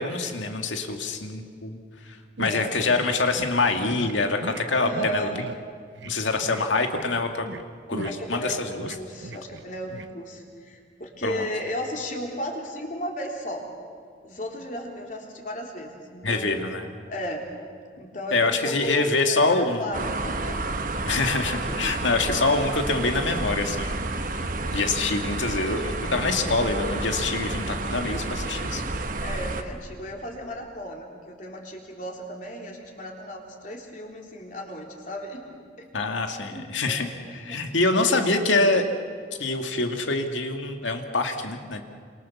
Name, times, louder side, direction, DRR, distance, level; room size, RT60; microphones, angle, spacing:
voice 1, 0.0-1.8 2.4-5.3 6.0-7.5 7.9-8.9 11.2-11.5 16.2-16.9 18.3-19.8 21.0-24.0 24.7-28.8 35.9-38.8 39.4-41.8, left 3 dB, 85° left, 5 dB, 2.1 m, -25 dB
voice 2, 2.4-2.9 4.7-5.4 8.0-8.6 8.9-13.7 14.2-16.6 17.1-17.5 18.0-20.6 21.6-22.1 29.2-35.9 36.5-38.5, equal, 40° left, 1 dB, 3.7 m, -35 dB
sound 1, 2.4-3.1 3.4-3.5 3.9-4.1 4.4-4.6 4.9-5.6 6.0-6.1 6.4-6.6 6.9-7.6 7.9-9.6 9.9-10.1, right 2 dB, 75° right, 1.0 m, -38 dB
sound 2, 19.9-29.6, right 2 dB, 45° right, 1.3 m, -30 dB
28.5 x 26.5 x 7.2 m, 2.1 s
head